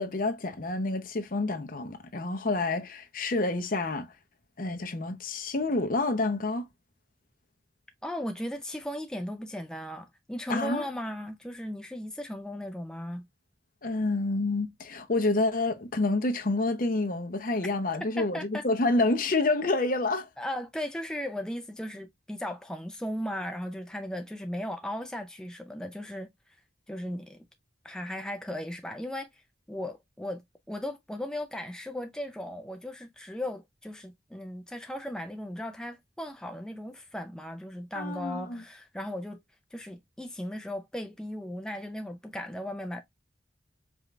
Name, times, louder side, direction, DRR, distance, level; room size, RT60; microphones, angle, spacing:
voice 1, 0.0-4.1 4.6-6.7 10.5-10.8 13.8-20.3 37.9-38.6, left 2 dB, 50° left, 0.8 m, -28 dB
voice 2, 8.0-13.3 18.2-18.6 20.4-26.3 26.9-27.5 27.8-29.4 29.7-39.4 39.7-43.0, left 1 dB, 5° left, 0.4 m, -37 dB
5.0 x 2.5 x 3.1 m
head